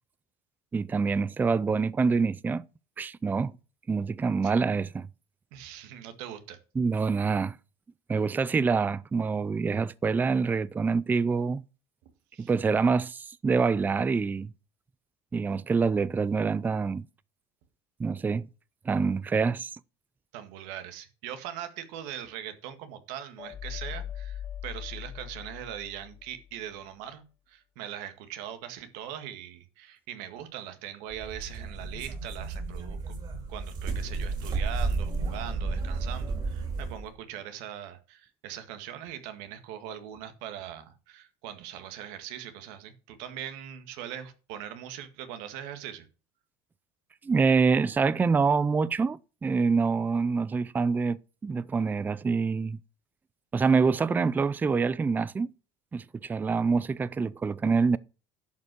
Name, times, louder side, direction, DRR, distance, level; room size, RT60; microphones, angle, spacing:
voice 1, 0.7-2.7 3.0-3.5 3.9-5.1 6.8-7.6 8.1-11.6 12.4-14.5 15.3-17.0 18.0-18.5 18.9-19.7 47.2-52.8 53.5-55.5 55.9-58.0, right 5 dB, 15° right, 0.4 m, -26 dB
voice 2, 5.5-6.6 12.3-12.5 20.3-27.2 27.5-33.1 33.5-46.1, right 10 dB, 75° right, 1.8 m, -41 dB
sound 1, 23.4-26.6, left 10 dB, 25° left, 2.1 m, -40 dB
sound 2, 31.1-37.1, right 3 dB, 35° right, 3.9 m, -32 dB
11.5 x 5.5 x 6.2 m
cardioid pair, 125°, 13 cm